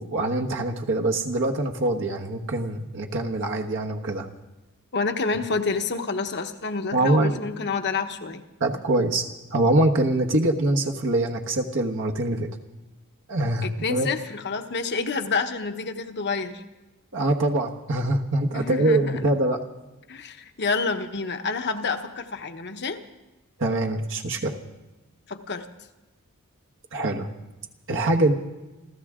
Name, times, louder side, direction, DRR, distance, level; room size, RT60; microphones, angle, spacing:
voice 1, 0.0-4.3 6.9-7.4 8.6-12.5 13.3-14.1 17.1-19.6 23.6-24.5 26.9-27.3 27.9-28.3, right 2 dB, 60° right, 2 dB, 1.3 m, -24 dB
voice 2, 4.9-8.4 13.6-16.6 18.5-19.3 20.1-23.0 25.3-25.6, left 4 dB, 50° left, 7 dB, 1.1 m, -28 dB
29.0 x 13.5 x 3.7 m, 1.1 s
head